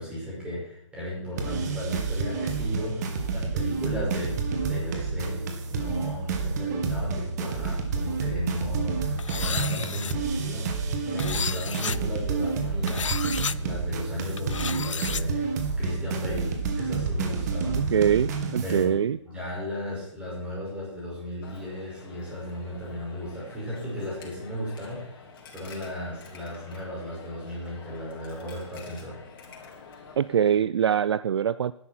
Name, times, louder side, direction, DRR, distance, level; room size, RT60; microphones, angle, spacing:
voice 1, 0.0-5.4 5.7-10.7 11.1-15.5 15.8-17.8 18.6-29.2, left 1 dB, 5° right, -6 dB, 5.9 m, -35 dB
sound 1, 1.4-18.8, right 4 dB, 35° right, 1.9 m, -29 dB
sound 2, 9.2-10.1 11.2-12.0 12.9-13.6 14.4-15.2, left 7 dB, 75° left, 0.6 m, -32 dB
voice 2, 17.8-19.2 30.2-31.7, right 8 dB, 55° right, 17 dB, 0.4 m, -23 dB
Coin (dropping), 21.4-30.6, left 4 dB, 45° left, 3.7 m, -48 dB
12.5 x 11.0 x 4.5 m, 0.76 s
hypercardioid pair, 155°, 16 cm